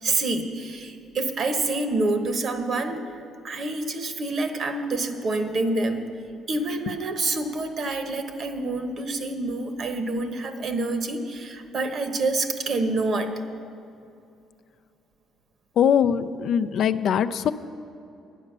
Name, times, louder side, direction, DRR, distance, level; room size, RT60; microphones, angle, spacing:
voice 1, 0.0-3.0 3.4-6.0 6.5-13.3, right 2 dB, 50° right, 7 dB, 1.1 m, -27 dB
voice 2, 15.8-17.5, left 8 dB, 60° left, 10 dB, 0.4 m, -21 dB
9.5 x 9.3 x 6.7 m, 2.6 s
cardioid pair, 100°, 0 cm